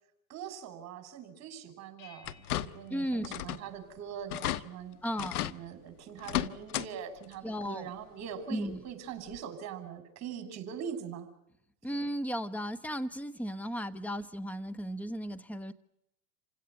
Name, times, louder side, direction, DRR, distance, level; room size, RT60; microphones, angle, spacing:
voice 1, 0.3-5.0 5.4-11.3, right 8 dB, 35° right, 9 dB, 6.3 m, -42 dB
sound 1, 2.0-4.2, left 6 dB, 55° left, 7.2 m, -60 dB
sound 2, 2.2-2.9 3.2-3.7 4.0-4.1 4.3-4.6 5.2-5.6 6.2-6.9 7.2-7.3 8.7-8.8 9.3-9.4, left 13 dB, 80° left, 1.3 m, -34 dB
voice 2, 2.9-3.3 5.0-5.4 7.4-7.9 8.5-8.8 11.8-15.7, equal, 5° left, 12 dB, 1.2 m, -35 dB
28.5 x 17.0 x 9.6 m, 0.80 s
supercardioid pair, 120°, 44 cm